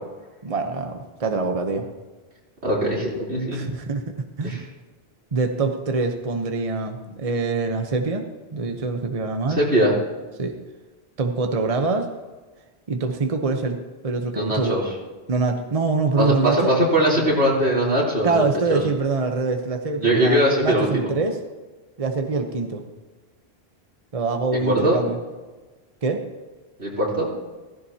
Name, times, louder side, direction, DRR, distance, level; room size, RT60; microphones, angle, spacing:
voice 1, 0.4-1.9 3.5-4.0 4.4-4.6 5.3-8.2 8.5-9.6 10.4-10.6 11.2-12.1 12.9-13.8 14.0-14.7 15.3-16.7 18.2-21.4 22.0-22.8 24.1-25.2 26.0-26.2, right 3 dB, 35° right, 4 dB, 1.0 m, -24 dB
voice 2, 2.6-3.6 4.4-4.6 9.5-9.9 14.3-14.8 16.2-18.4 18.7-18.8 20.0-21.1 24.6-25.0 26.8-27.3, right 1 dB, 85° right, -5 dB, 3.9 m, -21 dB
15.5 x 15.5 x 2.9 m, 1.3 s
omnidirectional pair, 1.1 m